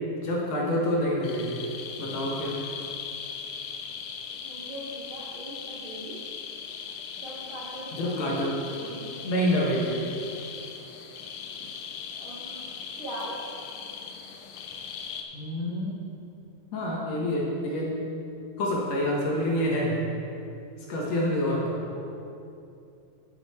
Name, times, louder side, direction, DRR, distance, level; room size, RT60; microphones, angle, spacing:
voice 1, 0.2-1.7 2.0-2.6 7.9-8.7 9.2-10.0 15.3-16.0 16.7-18.1 18.6-20.1 20.9-21.7, equal, 60° left, -3 dB, 2.0 m, -27 dB
sound 1, 1.2-15.2, left 6 dB, 80° left, 2.2 m, -39 dB
voice 2, 4.4-6.2 7.2-9.0 12.2-12.6 13.0-13.3 21.9-22.0, right 1 dB, 60° right, -6 dB, 1.4 m, -40 dB
10.5 x 7.9 x 4.3 m, 2.7 s
omnidirectional pair, 4.2 m